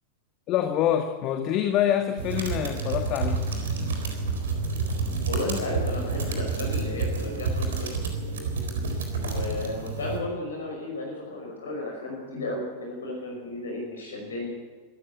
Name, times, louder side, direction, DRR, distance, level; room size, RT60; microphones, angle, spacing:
voice 1, 0.5-3.5, left 10 dB, 40° left, 6 dB, 1.7 m, -26 dB
sound 1, 2.2-10.2, right 4 dB, 65° right, 4.1 m, -29 dB
voice 2, 5.3-8.0 9.2-14.5, left 2 dB, 70° left, 0 dB, 5.6 m, -33 dB
25.0 x 14.0 x 8.4 m, 1.4 s
figure-of-eight pair, 90°, 0 cm